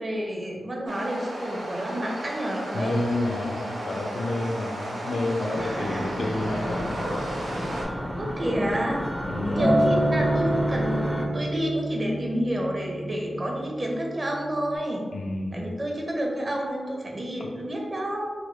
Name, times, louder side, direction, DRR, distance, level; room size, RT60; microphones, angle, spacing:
voice 1, 0.0-3.5 5.6-6.0 8.1-15.1 15.5-18.3, equal, 40° right, -1 dB, 0.7 m, -30 dB
sound 1, 0.9-7.8, right 1 dB, 85° right, 0.7 m, -34 dB
voice 2, 2.7-7.1 9.3-9.7 15.1-15.6, left 2 dB, 90° left, 1 dB, 0.4 m, -30 dB
sound 2, 5.5-11.3, equal, 5° right, 0.4 m, -32 dB
Acoustic guitar, 9.6-13.9 14.7-14.8, right 1 dB, 65° right, 1.0 m, -26 dB
3.2 x 2.2 x 3.1 m, 1.5 s
cardioid pair, 65°, 0 cm